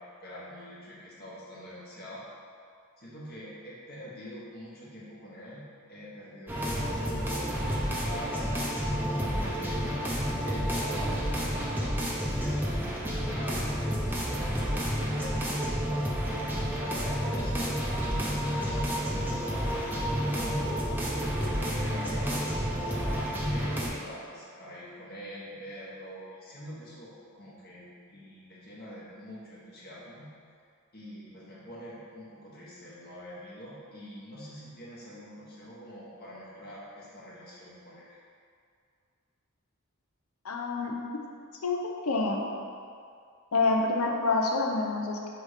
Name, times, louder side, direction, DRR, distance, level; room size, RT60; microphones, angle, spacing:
voice 1, 0.0-2.2 3.0-9.8 10.4-12.0 12.4-17.5 18.0-20.7 21.1-30.3 30.9-38.2, equal, 45° left, -7 dB, 1.3 m, -45 dB
sound 1, 6.5-23.9, equal, 10° right, 0.8 m, -30 dB
voice 2, 40.4-41.0 41.6-42.5 43.5-45.3, left 3 dB, 75° left, 1 dB, 0.8 m, -27 dB
5.6 x 3.5 x 4.9 m, 2.3 s
head